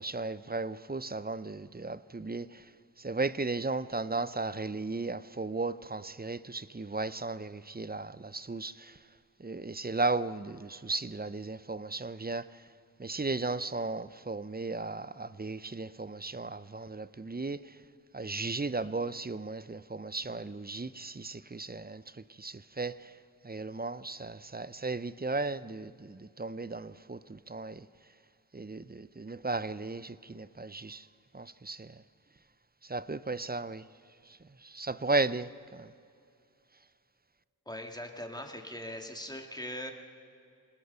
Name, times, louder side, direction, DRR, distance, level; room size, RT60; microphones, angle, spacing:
voice 1, 0.0-2.5 3.0-8.7 9.4-12.5 13.0-17.6 18.1-22.0 22.4-23.0 23.4-27.8 28.5-31.0 31.3-31.9 32.9-33.8 34.7-35.9, right 3 dB, 25° right, 0.6 m, -35 dB
voice 2, 37.7-39.9, left 1 dB, 10° left, 2.4 m, -40 dB
26.5 x 19.5 x 5.7 m
wide cardioid pair, 45°, 36 cm